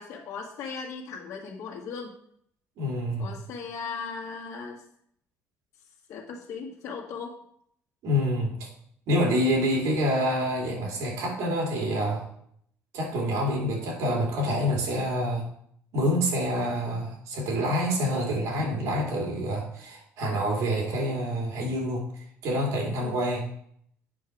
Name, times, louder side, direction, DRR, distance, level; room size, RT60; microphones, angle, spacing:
voice 1, 0.0-2.1 3.2-4.8 6.1-7.3 23.0-23.2, left 5 dB, 65° left, -1 dB, 1.6 m, -37 dB
voice 2, 2.8-3.4 8.0-8.7 9.1-12.3 12.9-15.4 15.9-22.1 22.4-23.5, equal, 65° right, 0 dB, 3.0 m, -27 dB
8.5 x 5.6 x 4.6 m, 0.67 s
cardioid pair, 150°, 6 cm